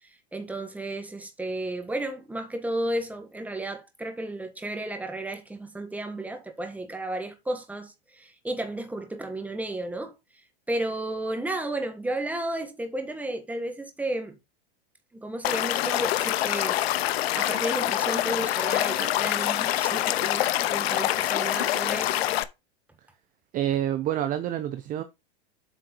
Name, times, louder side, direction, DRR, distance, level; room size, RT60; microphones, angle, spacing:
voice 1, 0.0-10.1 10.7-14.4 15.1-22.2, right 1 dB, 5° right, 1.5 m, -33 dB
Stream / Liquid, 15.4-22.4, left 14 dB, 70° left, 0.8 m, -26 dB
voice 2, 23.5-25.0, right 11 dB, 25° right, 0.7 m, -27 dB
8.0 x 4.5 x 4.5 m
supercardioid pair, 135°, 32 cm